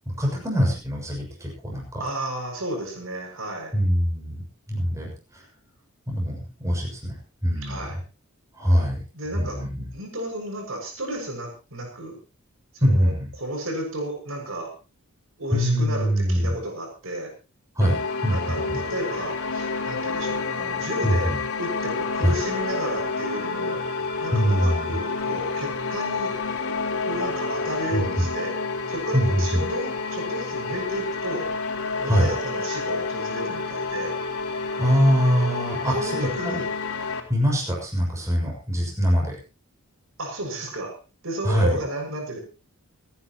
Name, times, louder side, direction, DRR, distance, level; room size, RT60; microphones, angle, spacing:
voice 1, 0.2-2.0 3.7-4.4 4.7-5.4 6.1-7.2 7.4-7.9 8.5-9.0 9.3-9.9 12.8-13.3 15.5-16.5 17.8-18.0 18.2-18.8 21.0-21.4 22.2-22.3 24.3-24.9 27.9-28.3 29.1-29.6 32.1-32.3 34.8-36.6 37.3-39.3 41.4-41.8, equal, 15° right, -2 dB, 6.4 m, -23 dB
voice 2, 2.0-3.7 7.6-8.0 9.1-9.6 9.9-12.2 12.7-13.1 13.4-14.7 15.4-17.3 18.3-23.8 24.2-26.4 27.0-28.6 28.9-31.5 32.0-34.2 35.9-36.7 40.2-41.0 41.2-42.4, right 1 dB, 65° right, 1 dB, 6.6 m, -32 dB
sound 1, 17.8-37.2, left 4 dB, 85° left, 3.7 m, -29 dB
29.5 x 10.5 x 3.0 m, 0.31 s
head